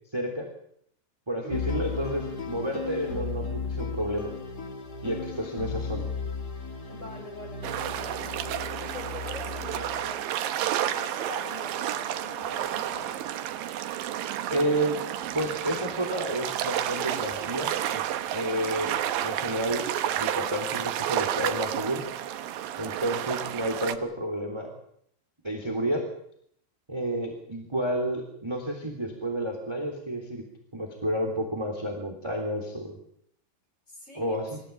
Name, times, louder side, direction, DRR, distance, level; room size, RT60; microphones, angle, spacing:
voice 1, 0.1-0.5 1.3-4.3 5.0-6.1 14.5-15.0 15.3-18.0 18.3-19.8 20.2-22.0 22.8-24.7 25.4-26.1 26.9-30.4 30.7-33.0 34.1-34.6, right 1 dB, 5° right, 3 dB, 2.7 m, -30 dB
voice 2, 1.4-1.7 5.0-5.6 6.9-13.4 22.8-23.2 33.9-34.6, left 1 dB, 15° left, 2 dB, 6.0 m, -45 dB
sound 1, 1.5-10.2, left 5 dB, 85° left, 0.8 m, -35 dB
sound 2, 7.6-23.9, right 11 dB, 70° right, 2.4 m, -31 dB
26.5 x 14.5 x 8.6 m, 0.70 s
omnidirectional pair, 5.2 m